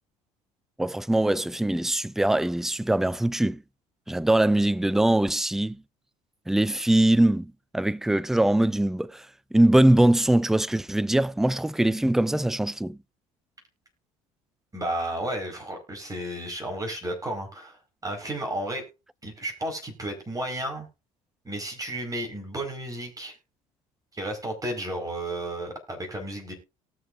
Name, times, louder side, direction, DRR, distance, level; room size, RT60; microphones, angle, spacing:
voice 1, 0.8-3.6 4.1-5.8 6.5-9.3 9.5-13.0, right 1 dB, ahead, 0.4 m, -22 dB
voice 2, 14.7-17.8 18.0-18.8 19.2-20.9 21.4-23.3 24.1-26.5, right 1 dB, 20° right, 5.0 m, -32 dB
19.0 x 6.6 x 2.6 m
hypercardioid pair, 65°, 17 cm